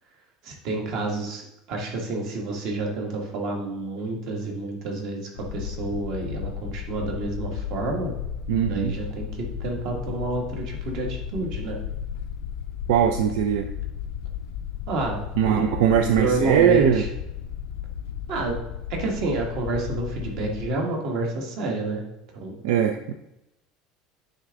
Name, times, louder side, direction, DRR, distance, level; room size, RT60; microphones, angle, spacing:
voice 1, 0.4-8.1 8.6-11.8 14.9-17.1 18.3-18.6 18.9-22.0 22.3-22.6, right 2 dB, 50° right, 1 dB, 1.5 m, -29 dB
sound 1, 5.4-20.7, left 8 dB, 75° left, 0.5 m, -34 dB
voice 2, 8.5-8.9 12.9-13.7 15.4-17.0 22.6-23.1, right 9 dB, 75° right, 7 dB, 0.4 m, -21 dB
8.9 x 3.7 x 3.5 m, 0.89 s
cardioid pair, 170°, 0 cm